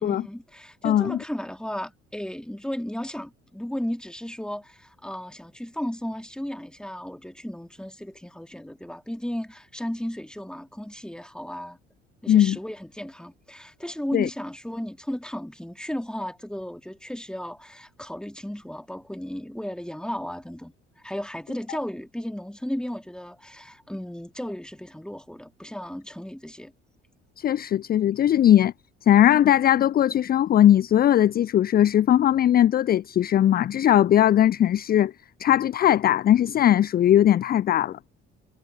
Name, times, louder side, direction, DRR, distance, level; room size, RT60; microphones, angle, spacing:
voice 1, 0.0-11.8 12.2-20.7 21.0-26.7, equal, ahead, 2.9 m, -34 dB
voice 2, 0.8-1.2 12.3-12.6 14.1-14.3 27.4-28.7 29.0-35.1 35.4-38.0, left 11 dB, 30° left, 0.4 m, -19 dB
figure-of-eight pair, 50°, 34 cm